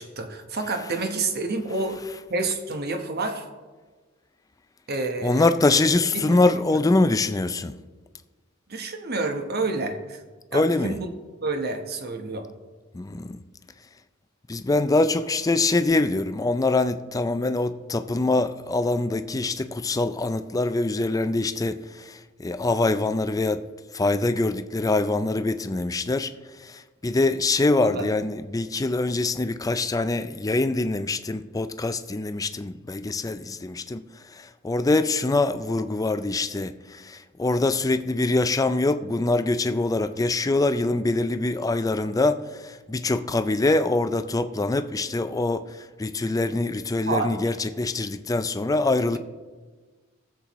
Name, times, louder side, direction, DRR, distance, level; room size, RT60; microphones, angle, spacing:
voice 1, 0.0-2.0 2.3-3.5 4.9-5.5 6.1-6.4 6.7-6.8 8.7-10.2 10.5-11.1 11.4-12.5 27.8-28.1 47.0-47.4, right 3 dB, 50° right, 1.1 m, -29 dB
voice 2, 5.2-7.7 10.5-11.0 12.9-13.4 14.5-23.6 23.9-26.3 26.6-34.0 34.3-49.2, left 2 dB, 15° left, 0.4 m, -24 dB
19.0 x 7.5 x 3.1 m
head